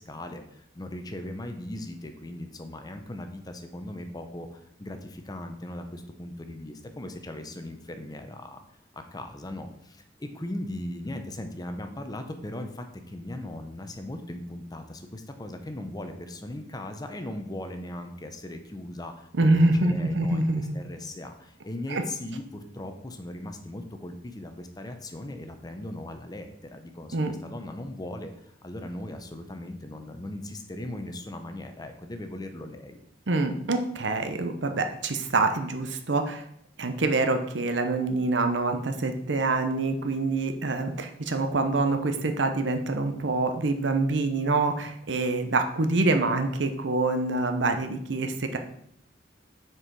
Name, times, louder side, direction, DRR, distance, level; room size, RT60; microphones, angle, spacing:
voice 1, 0.0-8.6 8.9-33.0, left 1 dB, 20° left, 6 dB, 0.7 m, -38 dB
voice 2, 19.3-20.8 21.9-22.0 27.1-27.3 33.3-36.4 36.8-48.6, right 2 dB, 75° right, 6 dB, 0.8 m, -26 dB
6.3 x 4.6 x 4.7 m, 0.71 s
head